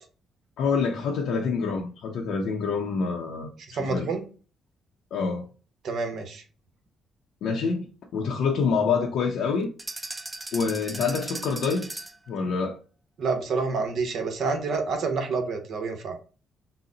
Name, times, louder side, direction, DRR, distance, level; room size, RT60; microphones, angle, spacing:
voice 1, 0.6-4.1 5.1-5.4 7.4-7.9 8.1-9.7 10.5-12.8, left 5 dB, 75° left, 0.5 m, -27 dB
voice 2, 3.7-4.2 5.8-6.4 13.2-16.2, right 4 dB, 70° right, 0.9 m, -28 dB
sound 1, 9.8-12.3, right 2 dB, 15° right, 0.3 m, -37 dB
3.8 x 2.1 x 3.8 m
cardioid pair, 90°, 0 cm